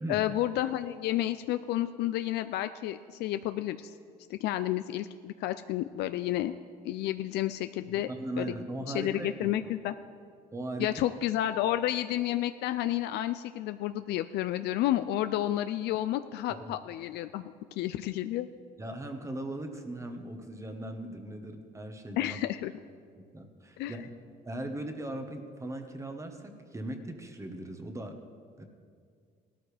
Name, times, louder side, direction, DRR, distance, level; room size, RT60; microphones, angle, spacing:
voice 1, 0.1-3.9 4.3-6.5 6.8-8.1 8.4-8.5 8.9-9.9 10.8-17.4 17.7-18.5 22.2-22.7 23.8-23.9, left 13 dB, 80° left, 11 dB, 0.4 m, -31 dB
voice 2, 7.9-9.5 10.5-10.9 16.5-16.6 18.8-22.4 23.2-24.1 24.4-28.2 28.6-28.7, right 1 dB, 15° right, 6 dB, 1.2 m, -39 dB
17.0 x 13.0 x 3.4 m, 2.1 s
cardioid pair, 110°, 17 cm